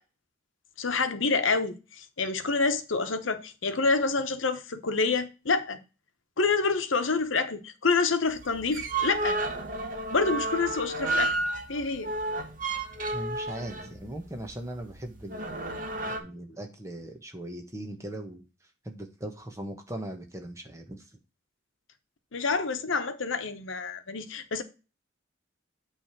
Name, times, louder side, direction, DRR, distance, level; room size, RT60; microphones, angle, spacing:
voice 1, 0.8-5.8 6.4-9.4 10.1-11.3 11.7-12.1 22.3-24.6, left 4 dB, 85° left, 1.0 m, -27 dB
sound 1, 8.3-16.2, right 2 dB, 45° right, 1.3 m, -32 dB
voice 2, 13.1-18.4 18.8-21.0, right 1 dB, 15° right, 1.2 m, -39 dB
8.7 x 3.4 x 6.1 m
head